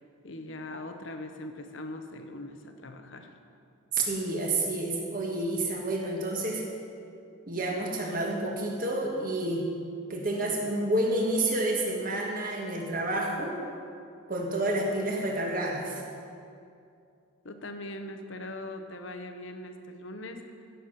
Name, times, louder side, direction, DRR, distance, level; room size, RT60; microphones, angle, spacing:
voice 1, 0.2-3.3 17.4-20.4, left 1 dB, 60° left, 6 dB, 1.0 m, -41 dB
voice 2, 3.9-6.7 7.5-9.6 10.1-13.6 14.3-16.0, right 1 dB, 40° right, -1 dB, 1.8 m, -29 dB
15.5 x 7.1 x 5.9 m, 2.5 s
head